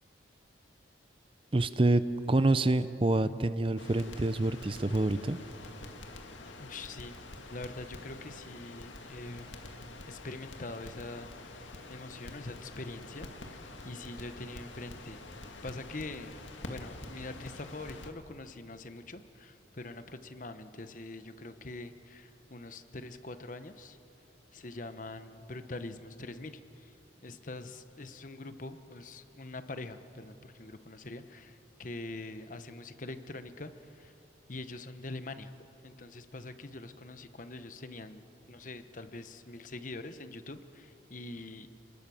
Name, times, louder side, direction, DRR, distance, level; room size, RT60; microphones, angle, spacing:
voice 1, 1.5-5.4, right 2 dB, 30° right, 13 dB, 0.5 m, -27 dB
Crackle, 3.8-18.1, left 2 dB, 90° left, 2.1 m, -47 dB
voice 2, 6.6-7.1 7.5-9.5 10.1-15.2 15.6-24.0 24.5-26.9 27.2-34.1 34.5-35.5 35.8-41.7, left 2 dB, 45° left, 10 dB, 1.0 m, -44 dB
29.5 x 20.0 x 7.1 m, 2.8 s
head